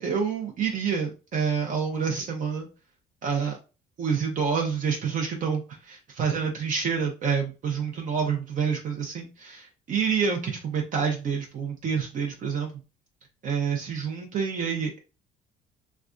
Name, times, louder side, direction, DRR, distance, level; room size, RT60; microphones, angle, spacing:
voice 1, 0.0-2.7 3.2-3.6 4.0-12.7 13.4-15.0, right 6 dB, 50° right, 1 dB, 0.7 m, -28 dB
3.2 x 2.3 x 2.5 m, 0.31 s
cardioid pair, 110°, 17 cm